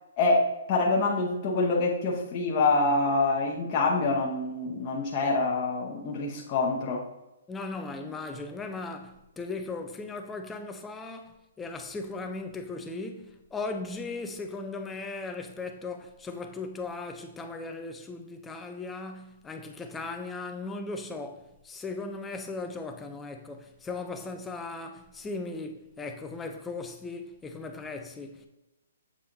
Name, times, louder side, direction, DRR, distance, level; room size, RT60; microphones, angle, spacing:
voice 1, 0.2-7.0, left 3 dB, 25° left, 0.9 m, -26 dB
voice 2, 7.5-28.5, left 3 dB, 5° left, 0.4 m, -37 dB
7.4 x 4.1 x 3.8 m
hypercardioid pair, 170°, 0 cm